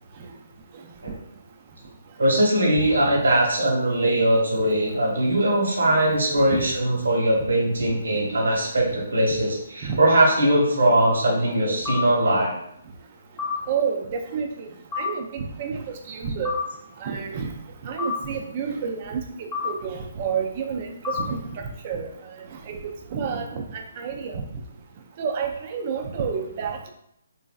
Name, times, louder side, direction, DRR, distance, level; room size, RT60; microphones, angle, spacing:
voice 1, 2.2-12.6, right 1 dB, 85° right, -2 dB, 1.1 m, -21 dB
sound 1, 11.9-12.0 13.4-13.6 14.9-15.1 16.5-16.6 18.0-18.2 19.5-19.7 21.0-21.2, left 6 dB, 15° left, 1.0 m, -27 dB
voice 2, 13.7-14.7 15.0-16.5 17.0-17.5 17.8-22.1 22.7-24.4 25.2-26.9, right 6 dB, 35° right, 3 dB, 0.4 m, -29 dB
3.0 x 2.5 x 2.3 m, 0.75 s
hypercardioid pair, 160°, 0 cm